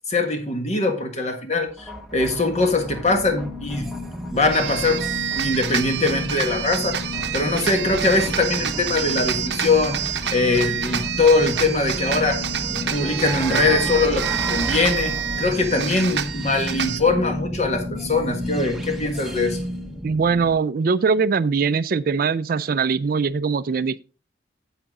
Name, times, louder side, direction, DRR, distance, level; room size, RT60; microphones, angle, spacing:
voice 1, 0.1-3.9 4.3-5.0 5.3-7.0 7.3-10.0 10.3-12.4 12.7-19.6, left 3 dB, 40° left, 1.7 m, -22 dB
sound 1, 1.7-20.5, left 1 dB, ahead, 1.1 m, -32 dB
sound 2, 4.5-17.0, right 9 dB, 70° right, 0.8 m, -28 dB
voice 2, 20.0-24.0, right 5 dB, 55° right, 0.4 m, -21 dB
8.6 x 8.0 x 3.7 m
head